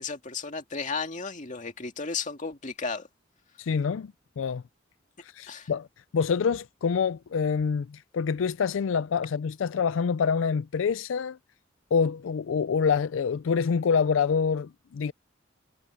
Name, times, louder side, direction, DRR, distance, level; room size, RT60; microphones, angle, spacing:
voice 1, 0.0-3.1 5.5-5.7, left 4 dB, 40° left, 2.2 m, -34 dB
voice 2, 3.6-4.6 5.2-5.9 6.1-11.4 11.9-15.1, left 6 dB, 85° left, 0.4 m, -26 dB
head